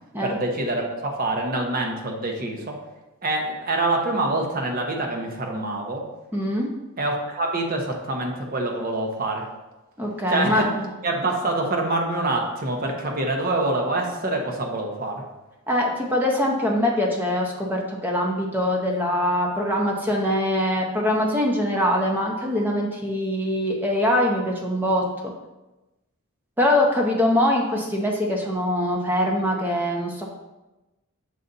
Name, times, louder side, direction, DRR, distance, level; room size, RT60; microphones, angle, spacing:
voice 1, 0.2-2.8 3.2-6.1 7.0-9.5 10.3-10.7 11.0-15.2, right 2 dB, 40° right, 1 dB, 0.9 m, -25 dB
voice 2, 6.3-6.7 10.0-10.9 15.7-25.3 26.6-30.2, left 1 dB, 10° right, -1 dB, 0.7 m, -23 dB
6.7 x 4.0 x 3.9 m, 1.0 s
head